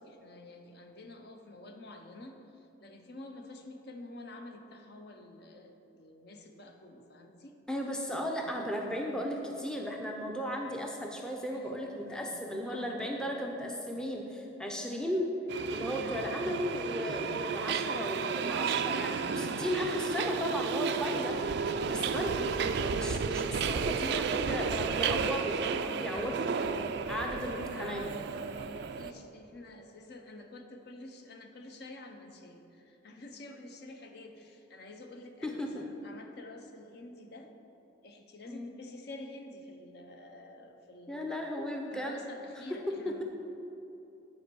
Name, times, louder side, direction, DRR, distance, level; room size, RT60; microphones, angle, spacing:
voice 1, 0.0-7.6 11.5-13.2 16.0-16.5 21.6-22.0 25.5-26.4 27.1-27.3 27.7-28.1 28.5-37.5 38.0-41.4 41.9-43.2, left 2 dB, 55° left, 4 dB, 0.7 m, -49 dB
voice 2, 7.7-15.3 15.7-21.4 21.9-22.6 22.8-28.1 35.4-35.9 38.5-38.7 41.1-42.2 43.0-43.2, equal, 5° left, 0 dB, 0.5 m, -35 dB
Subway metro underground, 15.5-29.1, right 5 dB, 55° right, 0.3 m, -32 dB
9.7 x 4.4 x 6.9 m, 3.0 s
head